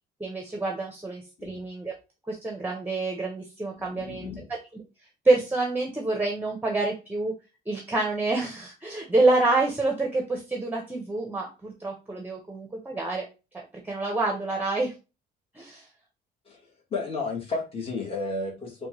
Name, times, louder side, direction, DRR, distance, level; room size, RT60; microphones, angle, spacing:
voice 1, 0.2-1.9 2.3-4.3 5.2-7.3 7.7-13.2 13.8-14.9 15.5-15.9, right 2 dB, 10° right, 1 dB, 0.7 m, -27 dB
voice 2, 3.8-4.5 16.4-18.9, left 3 dB, 35° left, -1 dB, 1.3 m, -33 dB
4.2 x 2.2 x 3.0 m, 0.30 s
cardioid pair, 115°, 17 cm